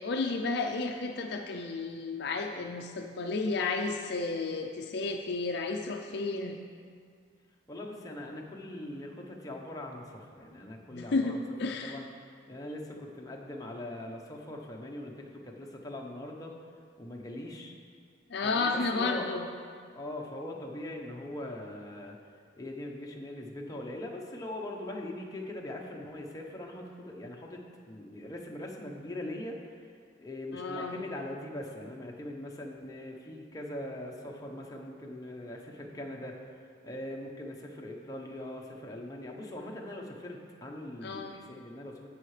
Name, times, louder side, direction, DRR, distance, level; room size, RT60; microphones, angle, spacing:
voice 1, 0.0-6.6 10.9-12.0 18.3-19.5 30.5-31.0 41.0-41.4, left 3 dB, 60° left, 3 dB, 0.5 m, -32 dB
voice 2, 7.7-11.4 11.8-12.0 12.5-16.5 17.0-17.7 18.4-19.3 19.9-22.2 22.6-29.6 30.2-36.5 36.8-42.1, left 1 dB, 20° left, -1 dB, 0.9 m, -41 dB
16.5 x 5.6 x 3.3 m, 2.1 s
head